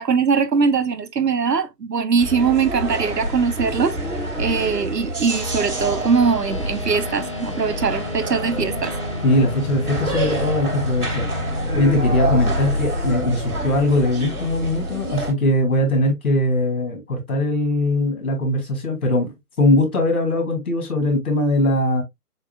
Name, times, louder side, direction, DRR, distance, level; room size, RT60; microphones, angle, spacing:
voice 1, 0.0-4.0 4.4-8.9, right 5 dB, 90° right, 0.9 m, -21 dB
sound 1, 2.2-15.3, right 1 dB, 70° right, 3.3 m, -27 dB
sound 2, 5.3-15.0, left 3 dB, 20° left, 0.5 m, -33 dB
voice 2, 9.2-11.3 11.7-19.3 19.6-22.0, left 1 dB, 65° left, 2.6 m, -20 dB
7.0 x 2.5 x 2.3 m
figure-of-eight pair, 145°, 47 cm